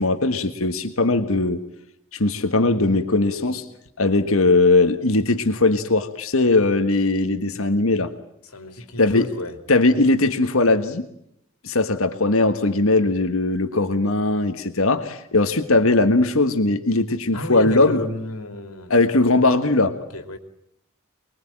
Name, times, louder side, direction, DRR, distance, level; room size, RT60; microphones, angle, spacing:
voice 1, 0.0-1.6 2.1-3.6 4.0-8.1 9.0-9.3 9.7-11.1 11.6-18.0 18.9-19.9, left 2 dB, 70° left, 1.6 m, -19 dB
voice 2, 8.4-9.6 17.3-18.9 20.1-20.4, left 1 dB, 90° left, 2.9 m, -31 dB
25.0 x 22.0 x 9.0 m
head